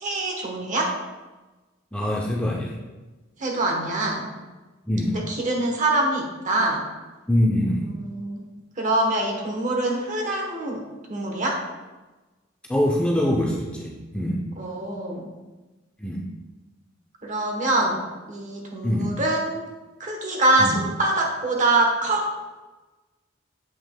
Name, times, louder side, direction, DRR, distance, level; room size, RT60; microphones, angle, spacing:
voice 1, 0.0-0.9 3.4-4.3 5.1-6.8 8.0-8.4 8.8-10.8 11.1-11.6 14.6-15.3 17.2-18.0 18.3-19.6 20.0-22.4, right 2 dB, 40° right, 1 dB, 1.0 m, -24 dB
voice 2, 1.9-2.8 4.9-5.1 7.3-7.9 12.7-14.5 16.0-16.2 18.8-19.1 20.6-20.8, left 1 dB, 5° left, -2 dB, 0.5 m, -23 dB
7.5 x 5.7 x 2.2 m, 1.2 s
head